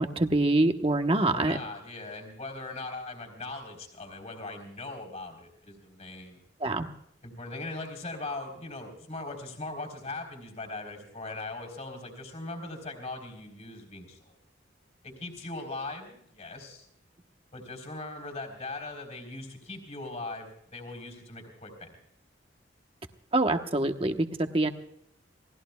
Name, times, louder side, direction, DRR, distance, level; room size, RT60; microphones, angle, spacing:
voice 1, 0.0-1.6 6.6-6.9 23.3-24.3 24.5-24.7, right 2 dB, 30° right, 5 dB, 1.1 m, -25 dB
voice 2, 1.3-6.4 7.2-14.2 15.0-16.9 17.5-22.0, left 2 dB, 35° left, 3 dB, 3.9 m, -40 dB
29.5 x 19.0 x 2.3 m, 0.75 s
head